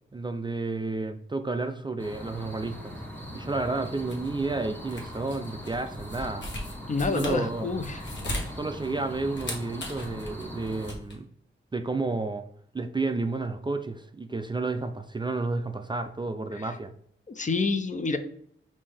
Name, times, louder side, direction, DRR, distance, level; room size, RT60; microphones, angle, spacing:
voice 1, 0.1-3.0 3.3-6.5 7.2-7.7 8.6-11.3 11.7-12.5 12.7-16.9, right 3 dB, 20° right, 7 dB, 0.3 m, -31 dB
sound 1, 2.0-10.9, equal, 10° left, 1.0 m, -41 dB
sound 2, 3.8-11.1, left 1 dB, 60° left, 1.2 m, -38 dB
voice 2, 6.9-8.0 16.6-16.7 17.3-18.2, left 3 dB, 35° left, 9 dB, 0.5 m, -28 dB
5.3 x 2.6 x 3.3 m, 0.63 s
wide cardioid pair, 80°, 21 cm